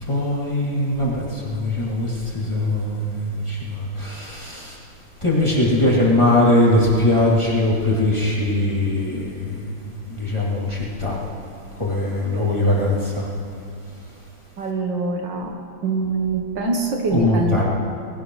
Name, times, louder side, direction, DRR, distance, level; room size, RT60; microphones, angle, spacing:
voice 1, 0.0-4.8 5.2-9.7 10.1-11.2 11.8-13.3 17.1-17.6, left 1 dB, 15° left, -6 dB, 2.6 m, -21 dB
voice 2, 14.6-15.5 15.8-17.6, right 3 dB, 65° right, 1 dB, 1.8 m, -24 dB
20.0 x 18.0 x 3.2 m, 2.5 s
omnidirectional pair, 2.2 m